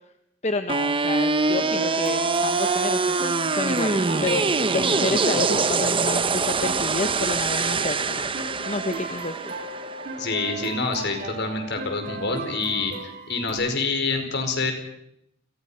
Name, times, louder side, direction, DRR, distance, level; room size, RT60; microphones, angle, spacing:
voice 1, 0.4-4.4 4.7-8.3 8.6-9.5, left 3 dB, 35° left, 8 dB, 1.1 m, -29 dB
sound 1, 0.7-10.7, right 4 dB, 25° right, 1.0 m, -24 dB
sound 2, 1.5-13.5, right 3 dB, 50° right, 5.0 m, -36 dB
voice 2, 10.2-14.7, left 3 dB, 60° left, 5 dB, 4.9 m, -27 dB
30.0 x 22.5 x 5.7 m, 0.79 s
head